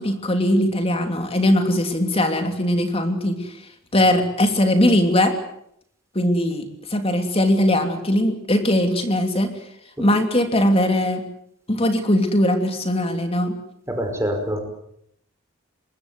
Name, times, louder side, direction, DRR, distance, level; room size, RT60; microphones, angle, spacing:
voice 1, 0.0-3.4 3.9-5.3 6.1-9.5 10.0-11.2 11.7-13.5, left 1 dB, 30° left, 6 dB, 3.0 m, -20 dB
voice 2, 13.9-14.6, equal, 15° right, 4 dB, 5.2 m, -25 dB
24.5 x 21.0 x 8.0 m, 0.72 s
head